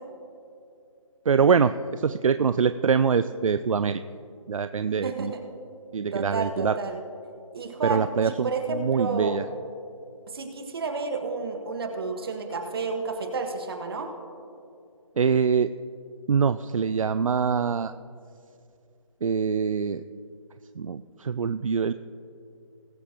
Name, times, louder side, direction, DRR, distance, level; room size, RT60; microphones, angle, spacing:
voice 1, 1.3-4.0 4.5-5.3 5.9-6.7 7.8-9.4 15.2-15.7 16.3-17.9 19.2-20.0 20.8-21.9, right 6 dB, 75° right, 12 dB, 0.4 m, -24 dB
voice 2, 5.0-5.4 6.1-7.0 7.5-9.4 10.3-14.1, right 4 dB, 45° right, 4 dB, 1.5 m, -31 dB
20.5 x 8.2 x 3.0 m, 2.5 s
figure-of-eight pair, 160°, 17 cm